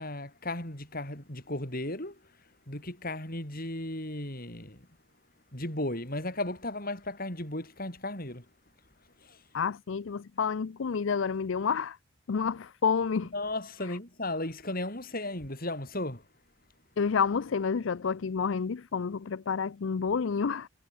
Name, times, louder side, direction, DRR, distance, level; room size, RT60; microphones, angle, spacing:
voice 1, 0.0-2.2 2.7-4.9 5.5-8.5 9.2-9.4 13.3-16.2, left 1 dB, 45° left, 6.5 m, -35 dB
voice 2, 9.5-12.0 12.3-13.3 17.0-20.7, left 6 dB, 65° left, 0.5 m, -29 dB
head